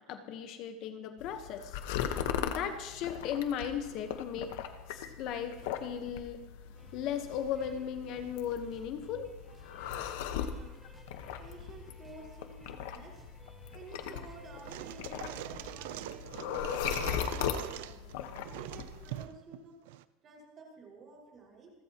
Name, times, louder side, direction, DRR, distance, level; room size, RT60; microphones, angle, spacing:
voice 1, 0.0-1.8 2.1-4.6 4.9-6.4 6.9-9.4, left 8 dB, 50° left, 7 dB, 1.2 m, -37 dB
sound 1, 1.2-19.3, left 9 dB, 75° left, 1.3 m, -39 dB
sound 2, 6.7-16.2, right 1 dB, 5° right, 2.0 m, -58 dB
voice 2, 10.4-10.8 11.4-13.2 13.7-16.8 17.2-18.2 18.5-19.8 20.2-21.7, right 3 dB, 30° right, -1 dB, 5.5 m, -52 dB
sound 3, 14.5-20.0, right 15 dB, 75° right, 0.6 m, -43 dB
28.0 x 14.0 x 3.0 m, 1.1 s
supercardioid pair, 145°, 0 cm